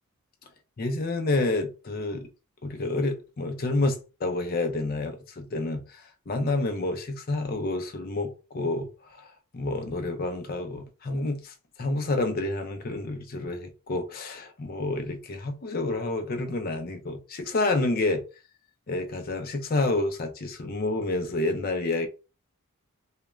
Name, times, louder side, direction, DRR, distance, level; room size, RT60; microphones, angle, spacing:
voice 1, 0.8-2.3 2.6-8.9 9.2-9.3 9.5-18.2 18.9-22.1, left 2 dB, 45° left, 0.5 m, -29 dB
2.3 x 2.1 x 3.0 m
head